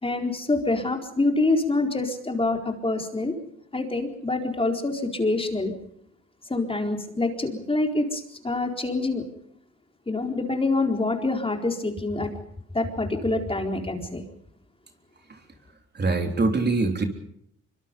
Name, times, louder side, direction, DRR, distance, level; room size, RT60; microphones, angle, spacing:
voice 1, 0.0-3.3 3.7-5.7 6.5-9.3 10.1-12.3 12.7-14.2, left 2 dB, 20° left, 3 dB, 4.3 m, -26 dB
voice 2, 16.0-17.0, right 3 dB, 35° right, 4 dB, 3.8 m, -23 dB
25.0 x 24.0 x 5.3 m, 0.71 s
cardioid pair, 90°, 30 cm